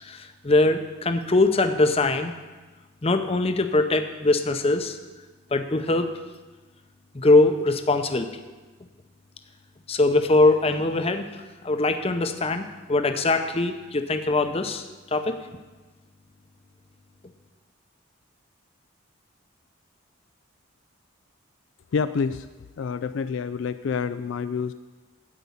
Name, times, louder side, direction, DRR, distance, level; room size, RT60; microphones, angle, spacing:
voice 1, 0.0-2.3 3.0-5.0 5.5-6.2 7.1-8.3 9.9-15.4, left 2 dB, 30° left, 7 dB, 0.7 m, -22 dB
voice 2, 21.9-22.5 22.8-24.7, left 5 dB, 65° left, 11 dB, 0.3 m, -27 dB
12.5 x 5.3 x 8.3 m, 1.3 s
head